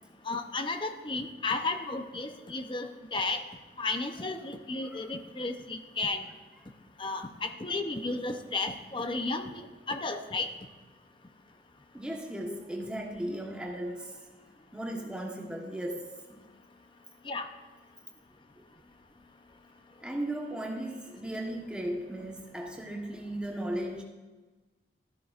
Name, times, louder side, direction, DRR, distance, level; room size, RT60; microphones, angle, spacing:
voice 1, 0.2-3.4 3.8-6.2 7.0-9.6 9.9-10.5 17.2-17.5, left 3 dB, 30° left, 7 dB, 0.7 m, -33 dB
voice 2, 11.9-14.3 14.7-16.5 18.6-18.7 20.0-24.0, right 1 dB, 5° right, -1 dB, 1.2 m, -36 dB
13.5 x 12.0 x 2.5 m, 1.3 s
head